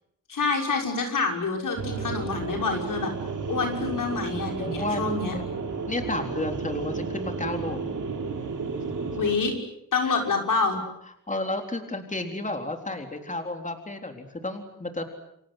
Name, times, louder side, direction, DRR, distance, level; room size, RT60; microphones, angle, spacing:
voice 1, 0.3-3.1 3.5-5.4 9.2-9.5 9.9-10.8, left 4 dB, 90° left, 2 dB, 6.3 m, -27 dB
sound 1, 1.8-9.4, right 5 dB, 70° right, 4.1 m, -32 dB
voice 2, 4.6-5.5 5.9-7.9 9.0-9.1 10.0-10.2 11.3-15.1, left 2 dB, 25° left, 4 dB, 3.9 m, -32 dB
29.5 x 23.5 x 7.9 m, 0.75 s
wide cardioid pair, 85°, 31 cm